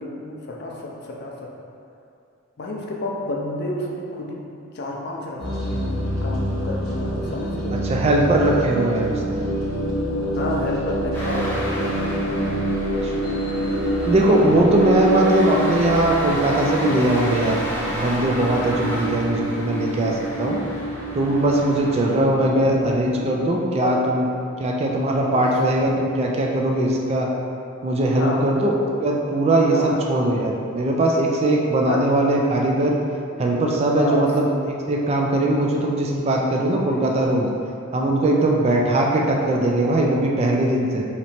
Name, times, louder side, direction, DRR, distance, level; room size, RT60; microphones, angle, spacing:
voice 1, 0.0-1.5 2.6-7.9 10.3-12.2 14.3-14.6 23.8-24.0 25.3-25.5 28.1-28.4 29.7-30.0 31.8-32.0 33.9-34.3, left 2 dB, 50° left, -2 dB, 0.4 m, -30 dB
sound 1, 5.4-23.5, right 1 dB, 80° right, 1.1 m, -27 dB
voice 2, 7.8-9.4 13.0-13.1 14.0-17.6 17.9-20.6 21.1-24.2 24.6-27.3 27.8-28.7 29.0-33.0 33.4-37.5 37.9-41.1, right 1 dB, 30° right, -1 dB, 0.3 m, -20 dB
sound 2, 11.1-22.2, equal, 10° left, 0.7 m, -33 dB
3.1 x 2.9 x 4.1 m, 2.5 s
head